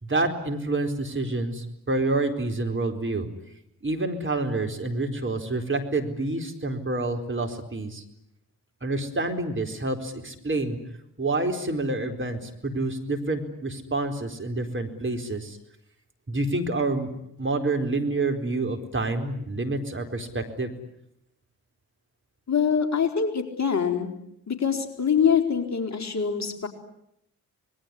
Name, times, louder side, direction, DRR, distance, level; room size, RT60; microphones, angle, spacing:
voice 1, 0.0-3.3 3.8-8.0 8.8-10.8 11.2-15.6 16.3-17.1 17.4-20.7, right 2 dB, 25° right, 4 dB, 4.4 m, -28 dB
voice 2, 22.5-24.1 24.5-26.7, left 7 dB, 35° left, 4 dB, 4.4 m, -24 dB
26.0 x 21.5 x 9.9 m, 0.78 s
hypercardioid pair, 45°, 45 cm